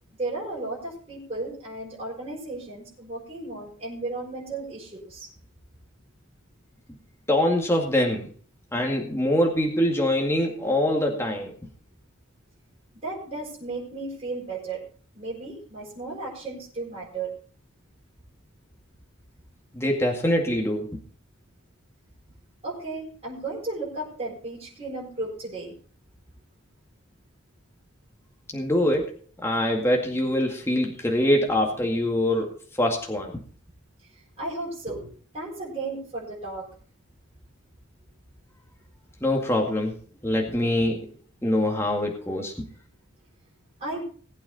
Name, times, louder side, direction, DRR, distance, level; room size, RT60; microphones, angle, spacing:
voice 1, 0.1-5.3 12.9-14.8 15.1-17.3 22.6-25.7 34.1-36.7 40.4-40.6 43.8-44.0, right 2 dB, 30° right, -6 dB, 6.2 m, -34 dB
voice 2, 7.3-8.3 8.7-11.5 19.7-20.9 28.5-29.2 29.4-33.4 39.2-40.0 40.2-41.0 41.4-42.7, left 1 dB, 10° left, 0 dB, 2.1 m, -24 dB
19.5 x 8.7 x 4.1 m, 0.42 s
head